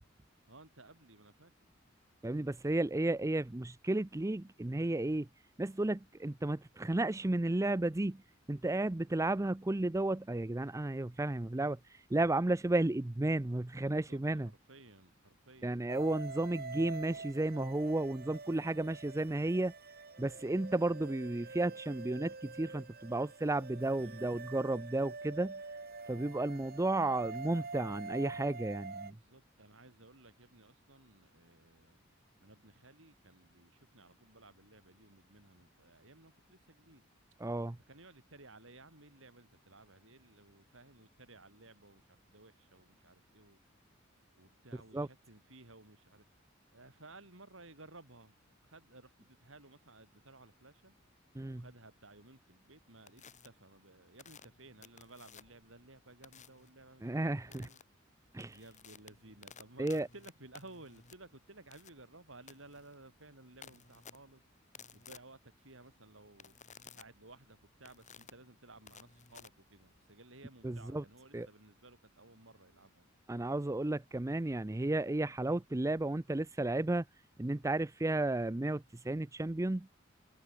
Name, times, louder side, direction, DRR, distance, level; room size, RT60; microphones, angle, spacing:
voice 1, 0.5-1.5 13.8-15.9 23.9-24.4 29.0-32.0 32.4-37.1 37.9-43.6 44.4-46.2 46.7-48.3 48.6-51.0 51.5-57.8 58.5-64.4 64.9-66.5 66.9-73.1, right 2 dB, 70° right, 7.3 m, -57 dB
voice 2, 2.2-5.3 5.6-8.2 8.5-14.5 15.6-19.7 20.2-25.5 26.1-29.1 37.4-37.8 44.9-45.1 51.4-51.6 57.0-57.7 58.3-58.6 59.8-60.1 70.6-71.0 71.3-71.5 73.3-77.0 77.4-79.9, right 2 dB, 15° right, 0.5 m, -33 dB
sound 1, 15.9-29.1, right 4 dB, 50° right, 3.8 m, -46 dB
sound 2, 53.1-53.5 54.2-55.7 56.2-56.7 57.5-57.8 58.2-70.1, left 6 dB, 40° left, 2.7 m, -56 dB
head